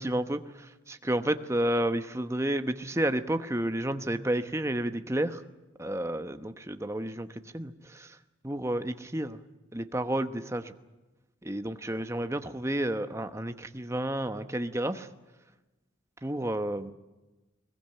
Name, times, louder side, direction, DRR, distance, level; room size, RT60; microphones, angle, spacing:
voice 1, 0.0-5.4 5.8-8.2 8.4-9.4 9.7-10.7 11.4-15.1 16.2-16.9, right 1 dB, 15° right, 8 dB, 0.9 m, -31 dB
21.5 x 20.0 x 8.9 m, 1.1 s
head